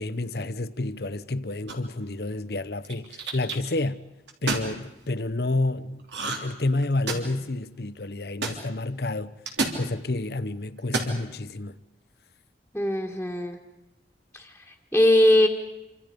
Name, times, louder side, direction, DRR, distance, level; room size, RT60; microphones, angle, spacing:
voice 1, 0.0-4.0 4.4-9.4 9.7-11.8, left 2 dB, 60° left, 0.9 m, -29 dB
sound 1, 1.7-2.0 2.8-3.6 4.3-4.7 6.1-6.6 6.8-7.4 8.4-8.6 9.5-9.8 10.8-11.2, right 3 dB, 80° right, 3.3 m, -29 dB
voice 2, 12.7-13.6 14.3-15.5, left 1 dB, 5° left, 1.7 m, -21 dB
27.5 x 25.5 x 5.2 m
head